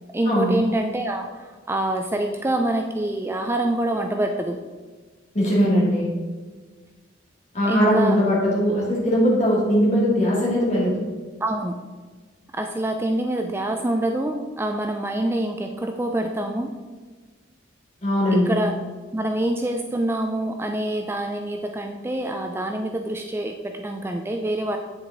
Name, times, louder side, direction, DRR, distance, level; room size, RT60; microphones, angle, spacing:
voice 1, 0.1-4.6 7.6-8.2 11.4-11.8 12.5-16.8 18.3-18.8 19.1-24.8, right 1 dB, 10° right, 4 dB, 0.4 m, -26 dB
voice 2, 5.3-6.1 7.5-10.9 18.0-18.6, equal, 35° left, -5 dB, 2.7 m, -20 dB
8.5 x 7.1 x 3.9 m, 1.4 s
head